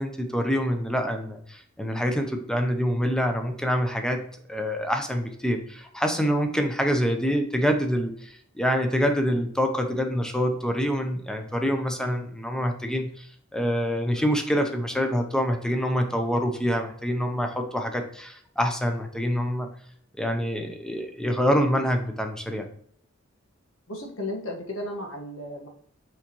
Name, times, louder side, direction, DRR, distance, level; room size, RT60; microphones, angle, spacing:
voice 1, 0.0-4.2 4.5-13.3 13.5-19.7 20.2-22.7, equal, 5° left, 5 dB, 0.8 m, -26 dB
voice 2, 23.9-25.7, left 1 dB, 80° left, 1 dB, 1.5 m, -34 dB
6.4 x 4.9 x 3.0 m, 0.62 s
head